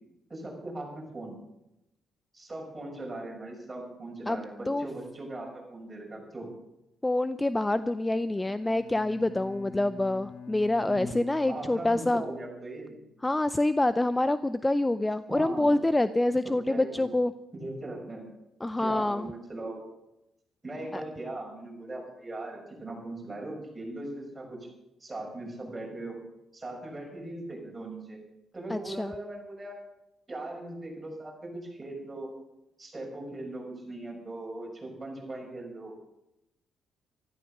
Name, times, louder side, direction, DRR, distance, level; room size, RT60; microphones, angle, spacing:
voice 1, 0.3-1.4 2.3-6.5 10.9-11.2 11.5-13.0 15.3-15.8 16.4-17.1 17.5-18.2 18.8-19.8 20.6-24.6 25.0-26.1 26.5-28.2 28.5-29.8 30.3-32.3 32.8-35.9, right 2 dB, 20° right, -1 dB, 6.6 m, -39 dB
voice 2, 4.3-4.9 7.0-12.2 13.2-17.3 18.6-19.3 20.9-21.0 28.7-29.1, left 2 dB, 15° left, 13 dB, 0.5 m, -26 dB
Bowed string instrument, 8.4-13.1, left 6 dB, 65° left, 2.9 m, -47 dB
14.0 x 13.5 x 6.6 m, 0.88 s
cardioid pair, 90°, 0 cm